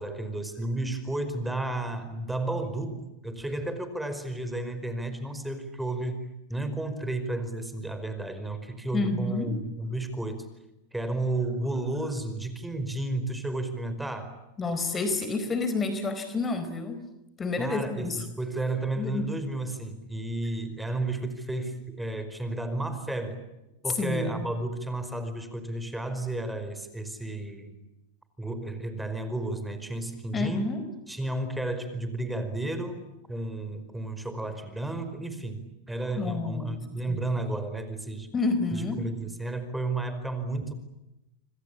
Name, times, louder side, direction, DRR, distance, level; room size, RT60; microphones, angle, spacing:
voice 1, 0.0-6.2 6.5-10.4 10.9-14.3 17.6-23.4 23.8-27.8 28.4-30.7 31.1-38.3 38.7-40.7, right 2 dB, 5° right, 10 dB, 5.0 m, -32 dB
voice 2, 8.9-9.6 14.6-17.0 17.4-18.2 19.0-19.3 23.9-24.5 30.3-30.9 36.2-36.8 37.1-37.2 38.3-39.0, left 3 dB, 20° left, 10 dB, 4.3 m, -29 dB
28.0 x 25.0 x 8.6 m, 0.95 s
hypercardioid pair, 105°, 0 cm